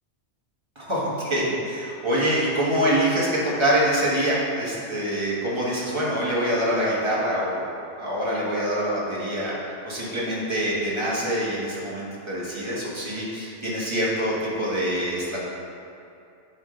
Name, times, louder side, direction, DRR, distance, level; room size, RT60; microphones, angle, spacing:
voice 1, 0.7-7.6 8.0-9.6 9.8-15.4, equal, 25° right, -7 dB, 1.5 m, -25 dB
10.5 x 3.6 x 3.8 m, 2.5 s
omnidirectional pair, 1.2 m